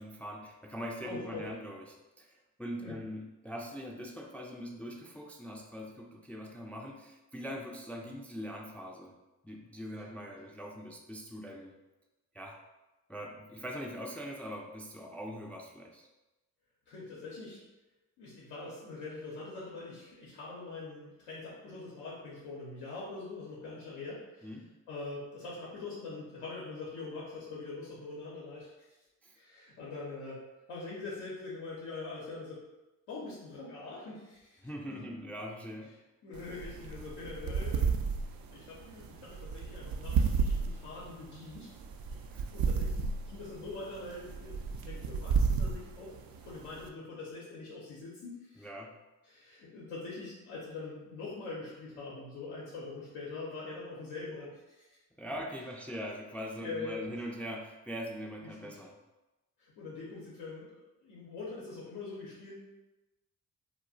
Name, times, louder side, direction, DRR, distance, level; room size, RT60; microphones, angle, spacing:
voice 1, 0.0-9.1 9.4-11.7 12.3-12.6 13.1-16.1 24.4-24.7 29.2-29.3 34.6-35.9 42.3-42.5 48.6-48.9 55.2-58.9, equal, 5° left, -1 dB, 0.4 m, -42 dB
voice 2, 1.0-1.4 2.8-3.0 16.9-17.6 18.2-24.5 24.9-28.9 29.3-30.4 30.7-32.6 33.1-34.6 34.9-35.0 36.2-37.9 38.5-41.7 42.1-42.2 42.5-46.1 46.4-48.7 49.2-54.9 56.6-57.1 58.4-58.8 59.6-62.5, left 3 dB, 85° left, -6 dB, 0.7 m, -43 dB
sound 1, 36.3-46.9, right 5 dB, 60° right, 0.5 m, -33 dB
2.3 x 2.0 x 3.8 m, 1.0 s
hypercardioid pair, 40°, 41 cm